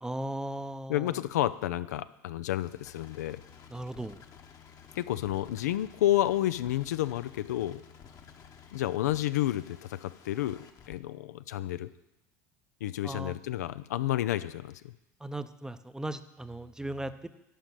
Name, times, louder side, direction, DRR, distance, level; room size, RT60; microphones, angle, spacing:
voice 1, 0.0-1.2 3.7-4.2 13.0-13.3 15.2-17.3, right 1 dB, 5° right, 12 dB, 0.6 m, -37 dB
voice 2, 0.9-3.4 5.0-7.8 8.7-11.9 12.8-14.9, left 13 dB, 85° left, 14 dB, 0.4 m, -30 dB
sound 1, 2.6-11.0, left 7 dB, 40° left, 1.1 m, -53 dB
11.5 x 5.2 x 7.4 m, 0.91 s
hypercardioid pair, 90°, 9 cm